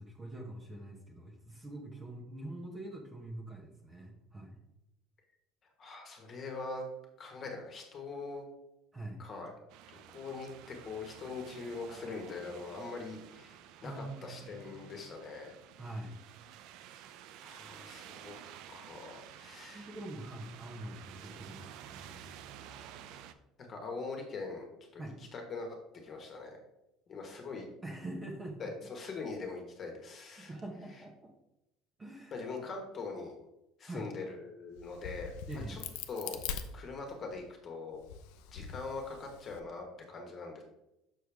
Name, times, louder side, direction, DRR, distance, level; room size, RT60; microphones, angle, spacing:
voice 1, 0.0-4.6 8.9-9.2 13.8-15.1 15.8-16.2 19.7-22.3 25.0-25.2 27.8-28.7 30.4-31.3 32.0-32.4 33.8-34.1 35.5-35.8, right 1 dB, 15° right, 0 dB, 0.9 m, -44 dB
voice 2, 5.8-6.8 7.2-8.4 9.2-9.5 9.9-15.5 17.4-18.3 18.7-19.9 23.7-24.7 24.9-25.0 25.3-25.7 26.0-26.6 27.1-27.6 28.6-30.5 32.3-33.4 33.8-35.8 36.1-36.4 36.7-38.0 38.5-40.6, left 4 dB, 30° left, 2 dB, 1.4 m, -42 dB
sound 1, 9.7-23.3, right 10 dB, 60° right, 0.5 m, -52 dB
Crack, 34.8-37.4 37.9-39.6, left 7 dB, 80° left, 0.6 m, -43 dB
6.6 x 6.3 x 3.5 m, 0.88 s
cardioid pair, 165°, 0 cm